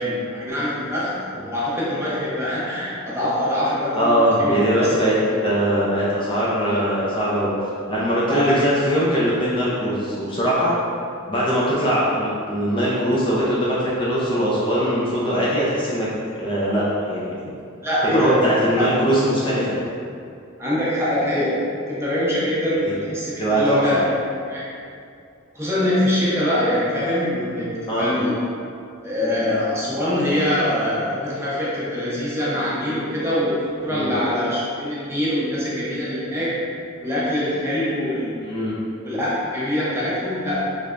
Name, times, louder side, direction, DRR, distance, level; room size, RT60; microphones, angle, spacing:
voice 1, 0.0-4.6 8.3-8.5 17.8-18.4 18.8-18.9 20.6-21.6 21.9-24.0 24.4-24.7 25.5-28.4 29.0-36.6 37.0-38.6 39.0-40.6, left 1 dB, 15° right, -8 dB, 0.7 m, -24 dB
voice 2, 4.0-5.2 5.4-7.5 7.9-10.7 11.3-16.1 16.4-17.3 18.1-19.7 23.4-24.0 27.4-27.5 27.9-28.1 33.9-34.1 38.4-38.7, equal, 25° left, -8 dB, 0.5 m, -21 dB
3.2 x 3.2 x 2.5 m, 2.4 s
head